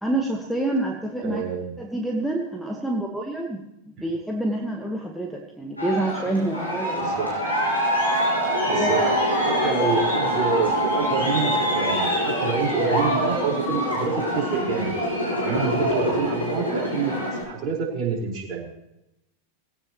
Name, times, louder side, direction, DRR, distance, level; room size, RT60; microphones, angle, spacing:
voice 1, 0.0-1.4 1.8-7.3 8.7-9.1, right 2 dB, ahead, 0 dB, 1.5 m, -27 dB
voice 2, 1.2-1.7 4.0-4.1 7.0-7.3 8.7-9.0 9.4-14.9 15.3-18.7, right 5 dB, 35° right, -2 dB, 4.9 m, -27 dB
Aircraft, 5.8-17.4, equal, 85° left, 7.2 m, -24 dB
19.5 x 17.0 x 3.1 m, 0.87 s
figure-of-eight pair, 90°, 0 cm